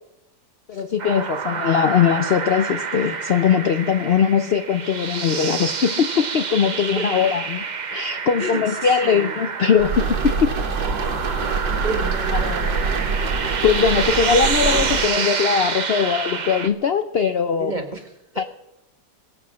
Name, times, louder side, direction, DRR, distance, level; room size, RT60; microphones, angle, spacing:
voice 1, 0.7-7.6 7.9-10.3 12.3-12.4 13.2-17.7 18.4-18.5, left 7 dB, 70° left, 9 dB, 0.5 m, -20 dB
sound 1, 1.0-16.7, right 5 dB, 45° right, 0.6 m, -28 dB
voice 2, 7.0-7.3 8.4-8.6 9.0-9.3 11.5-12.9 17.6-18.0, right 1 dB, 25° right, 5 dB, 1.5 m, -31 dB
sound 2, 9.8-15.1, right 5 dB, 85° right, 2.0 m, -25 dB
23.0 x 8.0 x 6.2 m, 0.88 s
omnidirectional pair, 1.9 m